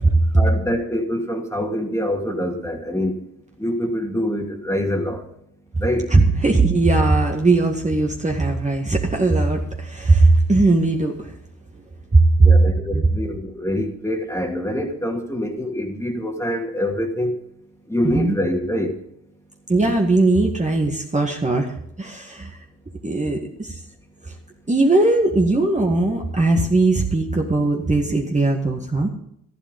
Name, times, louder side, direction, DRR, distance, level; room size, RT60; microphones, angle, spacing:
voice 1, 0.3-3.2 3.6-5.2 5.8-6.1 12.4-17.4 17.9-19.0, equal, 10° left, 3 dB, 2.5 m, -25 dB
voice 2, 6.1-11.3 12.1-12.5 12.9-13.1 18.0-18.3 19.7-22.6 23.0-23.7 24.7-29.1, right 2 dB, 20° right, 1 dB, 1.8 m, -18 dB
12.5 x 11.5 x 5.4 m, 0.73 s
supercardioid pair, 55°, 37 cm